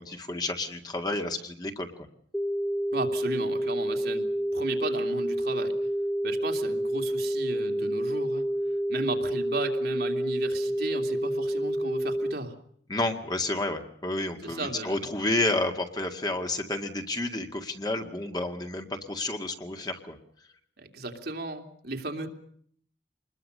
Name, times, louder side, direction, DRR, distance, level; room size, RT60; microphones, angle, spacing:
voice 1, 0.0-1.9 12.9-20.2, left 2 dB, 25° left, 5 dB, 2.0 m, -30 dB
sound 1, 2.3-12.3, right 1 dB, ahead, 1.1 m, -29 dB
voice 2, 2.9-5.8 6.2-8.5 8.9-12.5 14.4-15.0 20.8-22.3, right 2 dB, 60° right, 3 dB, 2.9 m, -35 dB
26.5 x 21.0 x 6.6 m, 0.62 s
head